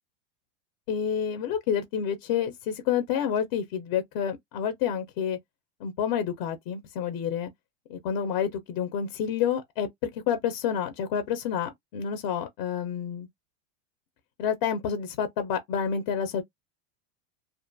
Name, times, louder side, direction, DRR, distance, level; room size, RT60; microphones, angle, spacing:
voice 1, 0.9-5.4 5.8-7.5 7.9-13.3 14.4-16.4, left 8 dB, 35° left, 0.4 m, -29 dB
2.5 x 2.2 x 2.5 m
supercardioid pair, 155°, 37 cm